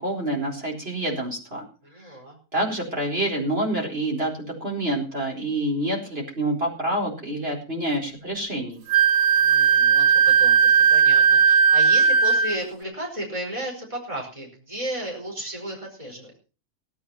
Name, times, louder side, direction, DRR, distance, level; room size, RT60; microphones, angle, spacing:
voice 1, 0.0-1.6 2.0-2.1 2.5-8.8, right 1 dB, 40° right, -1 dB, 4.8 m, -27 dB
voice 2, 1.8-2.4 9.4-16.3, right 1 dB, 20° right, 0 dB, 5.2 m, -34 dB
Wind instrument woodwind instrument, 8.9-12.6, right 6 dB, 60° right, 1.4 m, -17 dB
17.5 x 9.2 x 5.8 m, 0.35 s
omnidirectional pair, 1.6 m